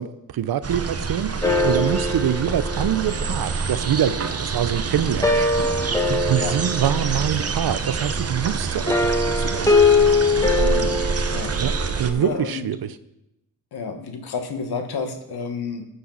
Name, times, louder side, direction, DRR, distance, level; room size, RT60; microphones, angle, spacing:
voice 1, 0.0-9.9 11.6-12.9, right 10 dB, 65° right, 14 dB, 0.8 m, -25 dB
sound 1, 0.6-12.1, right 4 dB, 40° right, 1.0 m, -26 dB
sound 2, 1.4-4.4 5.0-7.7 8.9-12.2, left 3 dB, 10° left, 1.8 m, -22 dB
voice 2, 10.6-11.6 12.2-12.7 13.7-15.9, left 5 dB, 75° left, 6 dB, 1.7 m, -30 dB
16.5 x 8.0 x 4.1 m, 0.86 s
supercardioid pair, 55°, 39 cm